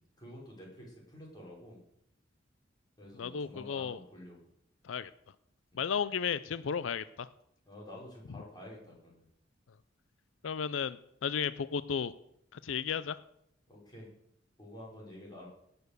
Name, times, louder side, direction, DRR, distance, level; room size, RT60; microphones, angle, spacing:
voice 1, 0.2-1.8 3.0-4.4 5.7-6.0 7.7-9.3 13.7-14.1 14.6-15.5, left 1 dB, 20° left, -3 dB, 5.2 m, -49 dB
voice 2, 3.2-4.0 4.8-5.1 5.7-7.3 10.4-12.1 12.5-13.2, left 7 dB, 90° left, 16 dB, 0.5 m, -34 dB
17.5 x 6.9 x 6.7 m, 0.77 s
head